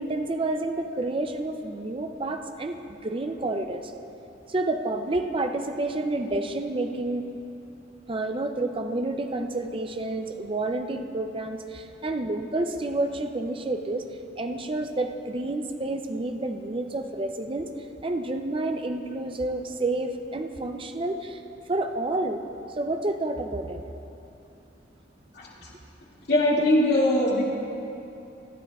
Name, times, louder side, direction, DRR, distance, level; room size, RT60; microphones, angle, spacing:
voice 1, 0.0-3.9 4.5-7.3 8.1-14.1 14.4-17.7 18.0-21.4 21.7-22.4 22.8-23.8, right 2 dB, 30° right, 6 dB, 0.5 m, -29 dB
voice 2, 26.3-27.4, left 1 dB, 60° left, -5 dB, 2.3 m, -21 dB
23.5 x 10.5 x 2.4 m, 2.9 s
head